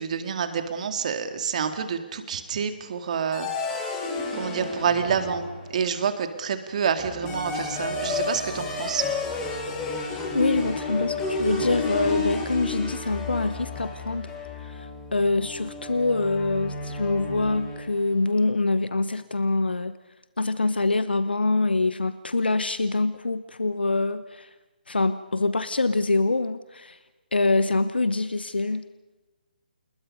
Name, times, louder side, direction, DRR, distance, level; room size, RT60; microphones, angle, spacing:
voice 1, 0.0-3.5 4.3-5.4 5.7-9.1, right 7 dB, 45° right, 7 dB, 2.2 m, -28 dB
sound 1, 3.3-5.9 7.0-18.1, left 3 dB, 15° left, 6.7 m, -31 dB
voice 2, 10.3-14.3 14.7-19.9 20.4-24.5 24.9-27.0 27.3-28.8, left 3 dB, 80° left, 13 dB, 1.0 m, -25 dB
28.0 x 21.0 x 5.5 m, 1.1 s
figure-of-eight pair, 145°, 5 cm